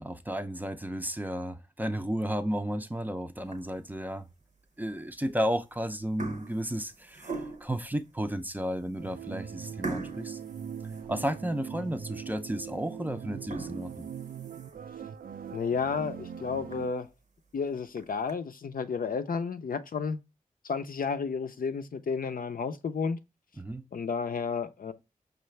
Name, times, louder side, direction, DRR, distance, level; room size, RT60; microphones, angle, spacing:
voice 1, 0.0-4.3 4.8-10.4 11.1-14.1 23.6-23.9, equal, 10° right, 0.4 m, -33 dB
sound 1, 3.4-3.9 4.5-4.6 5.4-5.7 6.0-7.8 8.4-8.5 8.9-9.0 9.8-11.6 12.0-12.1 12.6-12.7 13.3-14.9 15.4-15.5 15.9-16.0 16.3-16.4 16.7-16.8 17.7-18.3, right 3 dB, 55° right, 0.7 m, -41 dB
sound 2, 9.0-16.9, right 7 dB, 90° right, 0.4 m, -41 dB
voice 2, 15.5-17.1 17.5-20.2 20.6-23.2 23.9-24.9, left 5 dB, 80° left, 0.5 m, -32 dB
5.4 x 2.4 x 3.1 m
wide cardioid pair, 80°, 14 cm